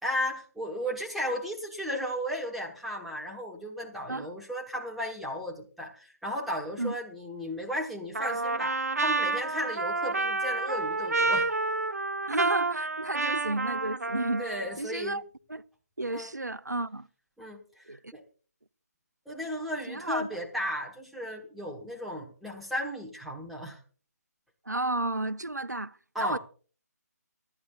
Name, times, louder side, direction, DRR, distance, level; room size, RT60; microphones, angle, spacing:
voice 1, 0.0-11.5 14.4-15.2 16.1-16.3 17.4-18.2 19.3-23.8 26.1-26.4, equal, ahead, 1.3 m, -35 dB
Trumpet, 8.1-14.8, right 3 dB, 65° right, 0.9 m, -29 dB
voice 2, 12.3-15.2 15.5-15.6 16.0-17.1 17.9-18.1 19.9-20.3 24.7-26.4, right 2 dB, 90° right, 0.5 m, -32 dB
26.5 x 9.7 x 2.3 m
figure-of-eight pair, 145°, 9 cm